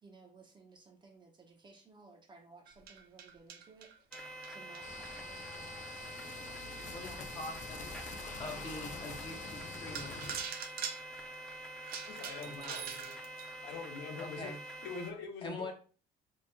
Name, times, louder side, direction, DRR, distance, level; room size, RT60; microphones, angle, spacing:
voice 1, 0.0-3.9 4.5-6.1 6.8-7.2, right 3 dB, 25° right, 0.8 m, -58 dB
sound 1, 2.7-6.1 6.7-6.8 7.3-7.4 8.0-8.1 9.2-9.3 9.7-13.5, right 7 dB, 65° right, 0.6 m, -44 dB
sound 2, 4.1-15.1, right 1 dB, 5° left, 0.6 m, -46 dB
sound 3, 4.8-10.4, left 4 dB, 45° left, 0.6 m, -46 dB
voice 2, 6.9-7.8 8.4-10.3 12.4-12.8 14.2-14.6 15.4-15.7, left 2 dB, 30° left, 1.2 m, -44 dB
voice 3, 12.1-13.1 13.6-14.5 14.8-15.7, left 5 dB, 85° left, 0.7 m, -44 dB
4.3 x 2.9 x 2.2 m
cardioid pair, 110°, 17 cm